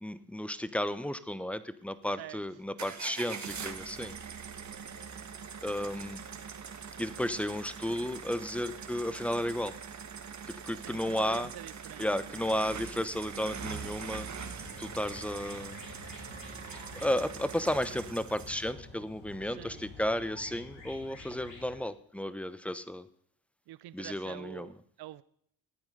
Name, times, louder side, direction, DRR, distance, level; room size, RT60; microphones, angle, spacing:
voice 1, 0.0-4.2 5.6-6.2 7.0-9.7 10.5-11.5 12.0-14.3 14.8-15.8 16.9-23.1 23.9-24.7, left 1 dB, 5° left, 15 dB, 0.9 m, -33 dB
sound 1, 2.8-18.7, right 6 dB, 40° right, 1.6 m, -43 dB
voice 2, 10.7-12.5 19.4-19.8 23.7-25.2, right 15 dB, 60° right, 16 dB, 0.6 m, -46 dB
sound 2, 13.8-21.8, left 3 dB, 75° left, 5.0 m, -50 dB
14.0 x 9.0 x 4.0 m, 0.65 s
supercardioid pair, 65°, 43 cm